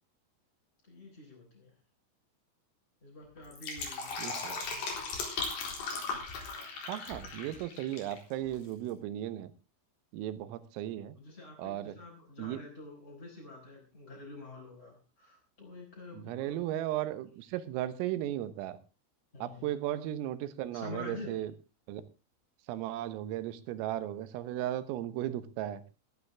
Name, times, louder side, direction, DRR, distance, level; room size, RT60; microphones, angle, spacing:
voice 1, 0.9-1.7 3.0-5.2 11.2-16.6 19.3-19.6 20.7-21.4, left 2 dB, 10° left, -4 dB, 4.8 m, -47 dB
Fill (with liquid), 3.4-8.2 8.4-8.5, left 4 dB, 60° left, 6.0 m, -37 dB
voice 2, 4.2-4.6 6.9-9.5 10.1-11.1 11.6-12.0 12.4-12.6 16.1-18.8 19.4-21.5 21.9-22.0 22.7-25.8, right 13 dB, 90° right, 13 dB, 3.8 m, -36 dB
15.5 x 15.0 x 3.5 m, 0.31 s
omnidirectional pair, 5.8 m